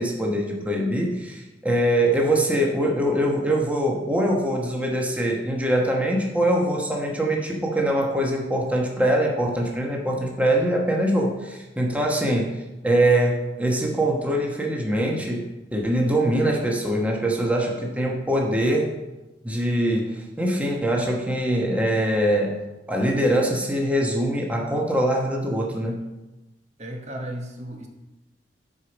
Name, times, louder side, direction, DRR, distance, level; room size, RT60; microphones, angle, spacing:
voice 1, 0.0-12.5 12.8-18.9 19.4-22.6 22.9-26.0, right 1 dB, 10° right, -1 dB, 1.1 m, -23 dB
voice 2, 26.8-27.9, right 1 dB, 40° right, 1 dB, 1.1 m, -34 dB
8.2 x 4.9 x 6.0 m, 1.0 s
head